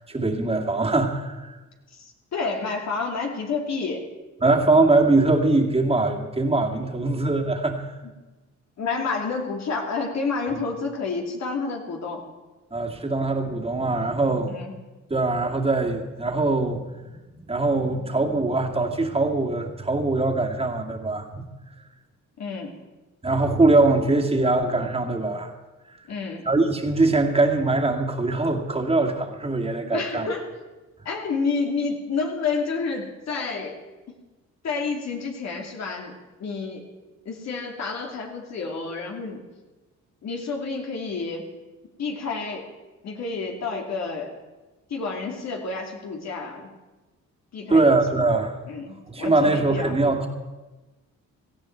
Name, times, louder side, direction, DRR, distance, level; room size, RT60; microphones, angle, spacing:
voice 1, 0.1-1.5 4.4-7.9 10.5-10.6 12.7-14.5 15.1-17.2 17.4-21.4 23.2-25.5 26.4-30.3 47.7-48.6 49.1-50.3, right 2 dB, 20° right, 1 dB, 2.3 m, -22 dB
voice 2, 1.9-4.1 8.8-12.2 14.5-14.7 22.4-22.7 26.1-26.4 29.9-30.5 31.0-33.8 34.1-34.2 34.6-36.1 36.4-36.8 37.2-39.4 40.2-41.4 42.0-42.7 43.0-44.3 44.9-46.7 47.5-47.8 48.2-48.3 48.7-50.0, left 4 dB, 60° left, 1 dB, 2.7 m, -29 dB
17.5 x 14.0 x 4.6 m, 1.2 s
cardioid pair, 90°, 30 cm